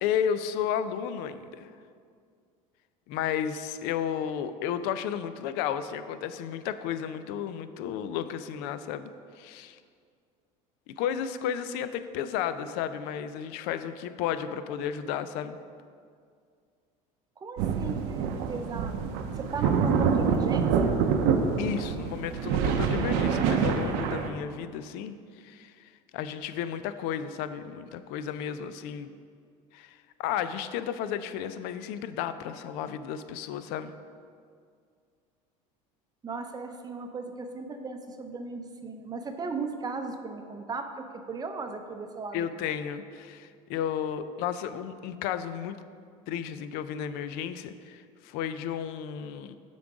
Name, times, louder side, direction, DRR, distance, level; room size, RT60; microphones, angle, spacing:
voice 1, 0.0-1.7 3.1-9.1 9.4-9.8 10.9-15.6 21.6-29.1 29.7-33.9 42.3-45.8 46.3-49.6, left 9 dB, 70° left, 12 dB, 0.4 m, -33 dB
voice 2, 17.4-21.0 36.2-42.5, right 4 dB, 20° right, 6 dB, 0.6 m, -36 dB
sound 1, 17.6-24.3, right 6 dB, 75° right, 0.6 m, -26 dB
7.2 x 3.8 x 4.8 m, 2.2 s
supercardioid pair, 100°, 17 cm